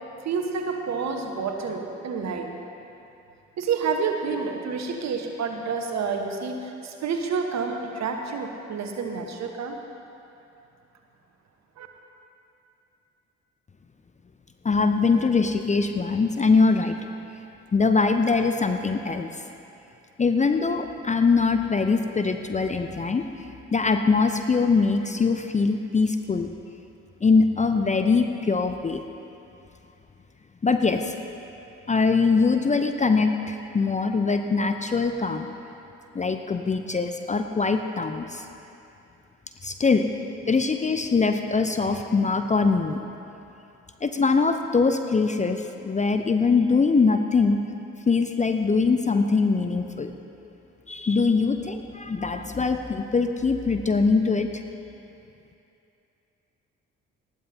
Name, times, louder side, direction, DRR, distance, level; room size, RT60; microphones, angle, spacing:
voice 1, 0.2-2.5 3.6-9.8 11.8-11.9, right 5 dB, 45° right, 4 dB, 1.3 m, -29 dB
voice 2, 14.6-17.0 17.7-19.3 20.2-26.5 27.2-29.0 30.6-31.1 31.9-35.5 36.1-38.5 39.6-40.0 40.5-43.0 44.0-47.6 48.1-50.1 50.9-54.6, left 4 dB, 20° left, 6 dB, 0.6 m, -22 dB
19.5 x 13.0 x 2.8 m, 2.8 s
figure-of-eight pair, 40°, 37 cm